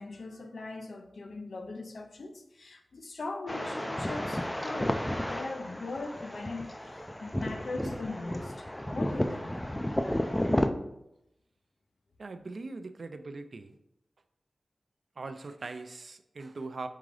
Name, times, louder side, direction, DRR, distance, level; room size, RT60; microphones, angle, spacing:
voice 1, 0.0-9.6, left 3 dB, 80° left, 0.5 m, -40 dB
sound 1, 3.5-10.7, left 1 dB, 15° left, 0.3 m, -32 dB
voice 2, 12.2-13.8 15.2-16.9, right 3 dB, 70° right, 0.3 m, -41 dB
3.7 x 3.7 x 3.2 m
wide cardioid pair, 65°, 0 cm